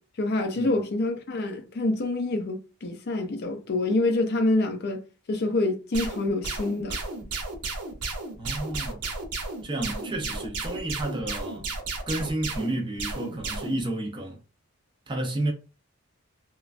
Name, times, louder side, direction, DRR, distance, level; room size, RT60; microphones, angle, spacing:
voice 1, 0.2-5.0 5.3-7.0, left 2 dB, 45° left, 0.4 m, -26 dB
sound 1, 5.9-13.8, right 3 dB, 90° right, 0.8 m, -33 dB
voice 2, 8.4-9.0 9.6-11.7 12.1-14.4 15.1-15.5, right 1 dB, 20° right, 0.5 m, -31 dB
3.0 x 2.2 x 2.4 m
head